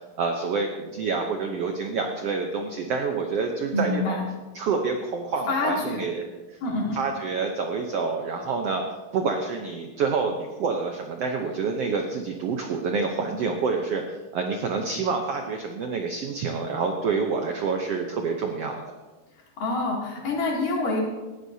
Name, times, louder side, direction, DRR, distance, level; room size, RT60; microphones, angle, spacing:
voice 1, 0.2-4.2 4.5-6.3 6.5-6.6 6.9-8.8 9.1-18.8, right 4 dB, 80° right, 3 dB, 1.4 m, -27 dB
voice 2, 3.7-4.3 5.5-6.0 6.6-7.0 19.6-21.0, left 2 dB, 70° left, -3 dB, 4.3 m, -26 dB
19.0 x 13.0 x 2.8 m, 1.2 s
omnidirectional pair, 4.0 m